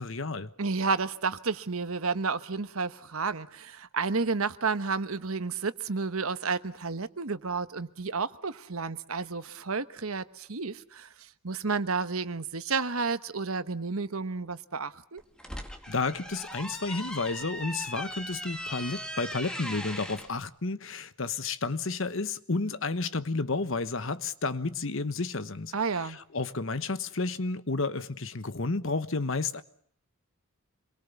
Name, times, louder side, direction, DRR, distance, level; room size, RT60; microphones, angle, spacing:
voice 1, 0.0-0.5 15.9-25.7 26.3-29.6, left 3 dB, 60° left, 1.2 m, -31 dB
voice 2, 0.6-15.2 25.7-26.2, right 4 dB, 75° right, 1.2 m, -31 dB
sound 1, 15.2-20.3, equal, 5° left, 2.1 m, -39 dB
27.0 x 22.5 x 7.1 m
head